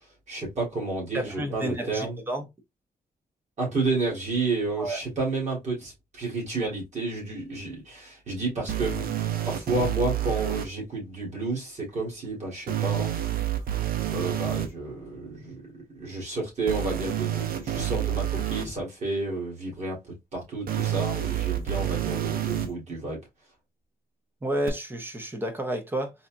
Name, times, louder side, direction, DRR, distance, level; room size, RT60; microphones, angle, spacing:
voice 1, 0.3-2.2 3.6-13.5 14.1-15.6 15.9-23.2, right 3 dB, 45° right, 2.0 m, -31 dB
voice 2, 1.1-2.5 4.8-5.0 24.4-26.1, right 1 dB, 15° right, 0.7 m, -30 dB
sound 1, 8.7-10.6 12.7-14.7 16.7-18.6 20.7-22.7 24.7-24.8, right 12 dB, 70° right, 0.6 m, -28 dB
4.1 x 2.4 x 2.6 m
wide cardioid pair, 175°, 16 cm